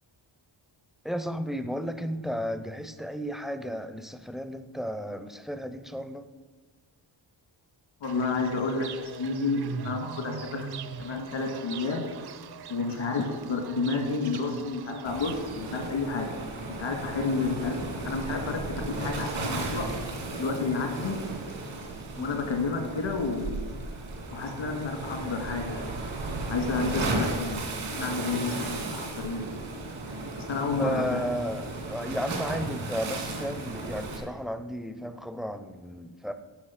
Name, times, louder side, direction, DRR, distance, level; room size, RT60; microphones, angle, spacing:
voice 1, 1.0-6.2 22.2-22.4 30.8-36.3, equal, ahead, 10 dB, 0.4 m, -33 dB
voice 2, 8.0-10.7 11.0-12.1 12.7-16.3 16.8-17.8 18.0-19.9 20.4-21.2 22.2-23.6 24.3-25.9 26.5-27.6 27.9-29.6 30.4-31.2, left 4 dB, 80° left, 3 dB, 2.0 m, -30 dB
Fowl / Bird, 8.0-15.9, right 6 dB, 55° right, 0.6 m, -41 dB
Waves surf, 15.0-34.2, right 2 dB, 80° right, 2.3 m, -35 dB
10.0 x 6.3 x 5.7 m, 1.3 s
wide cardioid pair, 135°, 46 cm